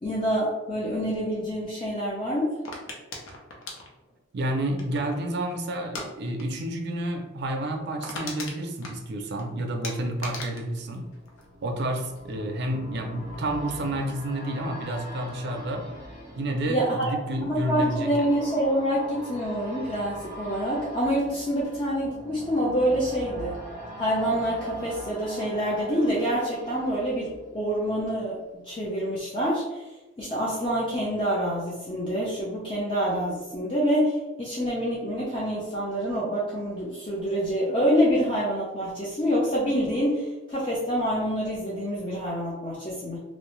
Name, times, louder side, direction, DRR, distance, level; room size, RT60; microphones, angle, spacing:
voice 1, 0.0-2.5 16.7-17.1 17.4-23.6 24.0-28.4 28.6-29.8 30.2-43.2, equal, 25° left, -7 dB, 0.5 m, -26 dB
sound 1, 2.6-5.2 5.8-6.1 6.4-6.6 6.9-7.0 7.4-7.5 7.7-9.4 9.8-11.9 12.2-12.6, left 2 dB, 85° left, 0.6 m, -38 dB
voice 2, 4.3-11.0 11.6-15.8 16.4-18.3, right 1 dB, 55° right, 3 dB, 0.4 m, -30 dB
sound 2, 10.7-28.1 28.5-28.6, equal, 10° left, 1.2 m, -42 dB
2.6 x 2.0 x 3.0 m, 1.1 s
head